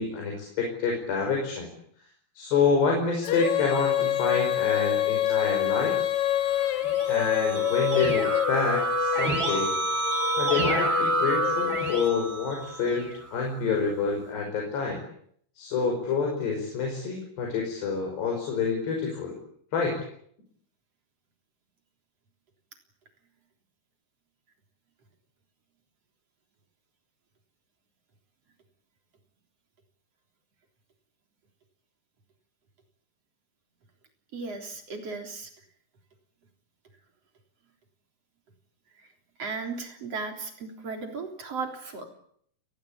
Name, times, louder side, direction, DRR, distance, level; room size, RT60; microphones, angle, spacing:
voice 1, 0.0-1.7 2.4-6.0 7.1-9.7 10.4-15.0 15.6-19.4 19.7-20.0, left 5 dB, 85° left, 1 dB, 7.4 m, -28 dB
Female singing, 3.2-12.4, left 12 dB, 65° left, 2.0 m, -27 dB
Keyboard (musical), 6.6-13.3, right 2 dB, 85° right, 9.2 m, -29 dB
voice 2, 34.3-35.5 39.4-42.1, right 4 dB, 40° right, 4 dB, 4.4 m, -35 dB
29.5 x 20.5 x 8.8 m, 0.67 s
omnidirectional pair, 4.7 m